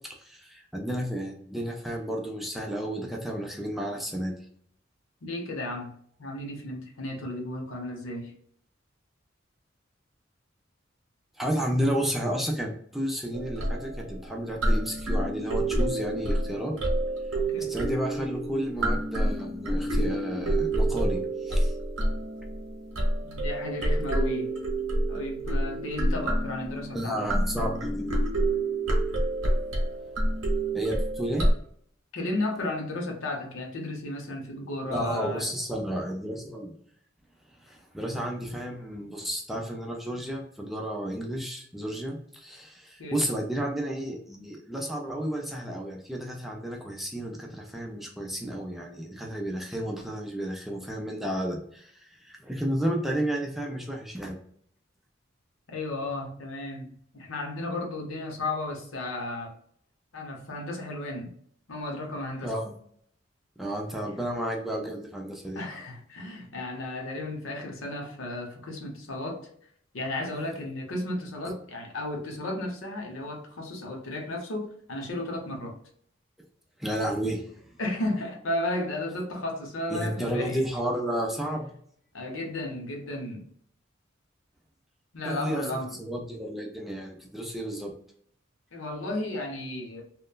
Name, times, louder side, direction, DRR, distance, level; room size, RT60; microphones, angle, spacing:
voice 1, 0.2-4.3 11.4-16.8 17.6-21.7 26.9-28.2 30.7-31.5 34.9-36.7 37.6-54.4 62.4-62.8 63.6-65.6 76.8-77.4 79.9-81.7 85.3-87.9, right 1 dB, ahead, 0.4 m, -32 dB
voice 2, 5.2-8.3 17.3-17.8 23.2-24.5 25.1-27.3 32.1-35.5 43.0-43.2 55.7-59.5 60.1-61.3 61.7-62.5 64.0-64.2 65.5-69.5 69.9-75.8 77.8-80.7 82.1-83.5 85.1-86.0 88.7-90.0, left 1 dB, 85° left, 0.8 m, -34 dB
sound 1, 13.3-31.5, right 1 dB, 90° right, 0.9 m, -28 dB
2.9 x 2.1 x 2.2 m
head